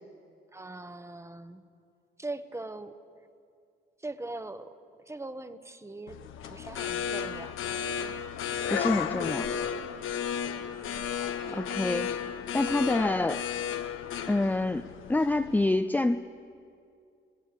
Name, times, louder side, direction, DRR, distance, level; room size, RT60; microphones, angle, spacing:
voice 1, 0.5-1.6 2.2-3.0 4.0-4.7 5.1-7.6 11.5-11.7, right 2 dB, 15° right, 11 dB, 1.1 m, -41 dB
sound 1, 6.1-15.7, left 8 dB, 85° left, 1.1 m, -34 dB
voice 2, 8.7-9.5 11.6-12.1 12.5-13.5 14.3-16.4, left 2 dB, 10° left, 9 dB, 0.5 m, -27 dB
27.0 x 16.5 x 6.9 m, 2.4 s
cardioid pair, 90°, 20 cm